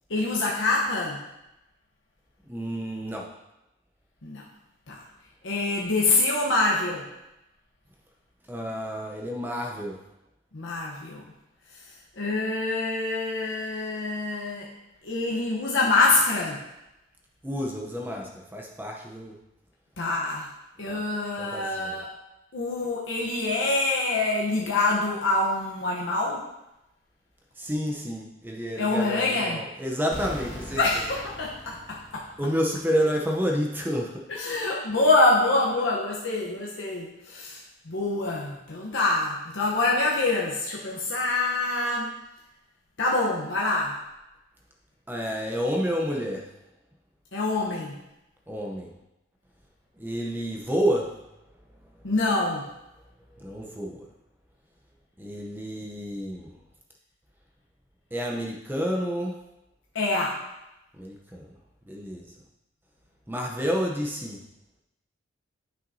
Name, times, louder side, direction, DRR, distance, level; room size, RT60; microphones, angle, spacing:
voice 1, 0.1-1.2 4.2-4.4 4.9-5.0 5.4-7.1 10.5-11.2 12.2-14.7 15.0-16.6 20.0-20.5 20.8-22.1 22.5-26.5 28.8-29.6 30.8-32.3 34.3-37.6 37.9-42.2 43.0-44.0 47.3-48.0 52.0-52.7 59.9-60.4, left 2 dB, 70° left, -4 dB, 0.9 m, -25 dB
voice 2, 2.4-3.3 8.5-10.0 17.4-19.4 20.9-21.0 21.4-22.0 27.6-30.8 32.4-34.3 45.1-46.5 48.5-48.9 50.0-51.1 53.4-54.0 55.2-56.5 58.1-59.4 60.9-61.5 61.9-62.3 63.3-64.4, equal, 10° right, 0 dB, 0.7 m, -29 dB
sound 1, 30.1-32.8, left 1 dB, 50° left, 1.6 m, -40 dB
10.0 x 5.8 x 2.7 m, 0.93 s
head